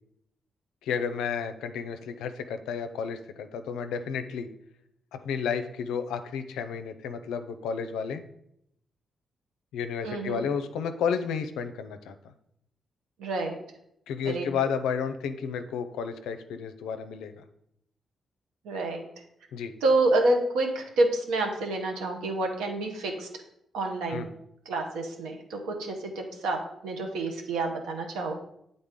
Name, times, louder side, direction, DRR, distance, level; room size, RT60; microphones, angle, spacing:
voice 1, 0.8-4.5 5.1-8.2 9.7-12.1 14.1-17.4 19.5-19.7 24.1-24.3, left 6 dB, 90° left, 8 dB, 0.4 m, -32 dB
voice 2, 10.0-10.4 13.2-13.6 14.2-14.5 18.6-19.1 19.8-23.3 23.7-24.3 24.7-28.3, right 2 dB, 90° right, 3 dB, 0.9 m, -28 dB
7.9 x 3.9 x 3.7 m, 0.76 s
supercardioid pair, 55°, 0 cm